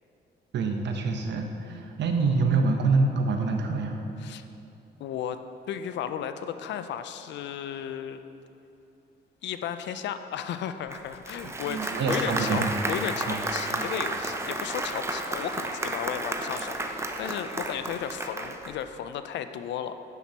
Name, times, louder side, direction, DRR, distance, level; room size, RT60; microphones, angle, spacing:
voice 1, 0.5-4.0 11.7-12.7 13.3-13.4 13.7-13.8, right 4 dB, 65° right, 4 dB, 0.8 m, -26 dB
voice 2, 5.0-5.4 5.7-8.2 9.4-20.0, left 9 dB, 65° left, 10 dB, 0.4 m, -34 dB
Applause, 10.9-18.8, right 2 dB, 15° right, 0.5 m, -32 dB
9.0 x 6.0 x 2.8 m, 2.8 s
cardioid pair, 90°, 20 cm